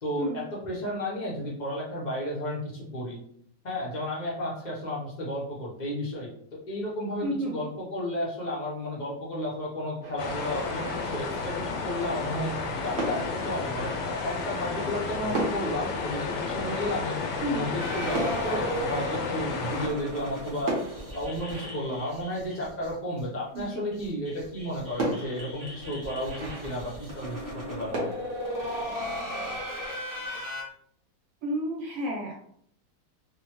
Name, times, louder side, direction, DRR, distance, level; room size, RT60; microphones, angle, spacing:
voice 1, 0.0-3.2 3.6-12.5 12.8-17.1 17.5-20.8 21.1-27.4 27.7-28.1, equal, 75° left, -5 dB, 0.4 m, -33 dB
voice 2, 7.2-7.6 17.4-17.7 23.5-23.8 31.4-32.3, equal, 75° right, -2 dB, 1.6 m, -31 dB
sound 1, 10.0-11.8 12.6-12.7 13.0-14.7 15.0-15.1 15.3-20.1 20.6-23.2 23.8-23.9 24.2-24.3 25.0-27.6 27.9-28.8, right 1 dB, 60° right, 1.4 m, -37 dB
sound 2, 10.2-19.9, left 4 dB, 90° left, 1.4 m, -32 dB
sound 3, 17.8-22.9 23.2-23.3 23.5-23.6 23.9-30.6, equal, 20° right, 0.5 m, -36 dB
3.5 x 2.1 x 2.9 m, 0.65 s
omnidirectional pair, 2.0 m